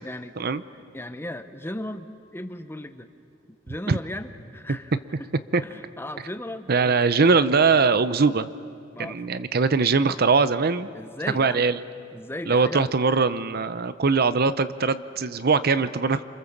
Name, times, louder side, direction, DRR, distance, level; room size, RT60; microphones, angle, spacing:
voice 1, 0.0-0.3 0.7-3.1 3.5-4.9 5.2-5.3 5.6-7.0 8.9-9.3 10.9-11.7 12.1-12.9, left 1 dB, 10° left, 9 dB, 0.9 m, -37 dB
voice 2, 6.7-8.5 9.0-10.9 11.3-11.8 12.5-16.2, right 4 dB, 50° right, 13 dB, 0.7 m, -21 dB
28.0 x 25.5 x 7.3 m, 2.4 s
head